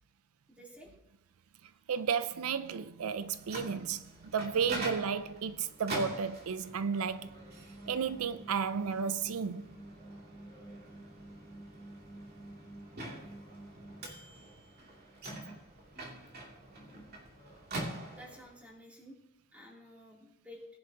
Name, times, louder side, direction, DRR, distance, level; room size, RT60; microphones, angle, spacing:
voice 1, 0.5-0.9 18.1-19.2 19.5-20.6, equal, 5° right, 3.1 m, -52 dB
voice 2, 1.9-7.4 7.9-9.7, right 6 dB, 85° right, 0.5 m, -33 dB
Microwave oven, 3.1-18.6, right 2 dB, 50° right, 2.8 m, -44 dB
20.0 x 10.5 x 2.9 m
head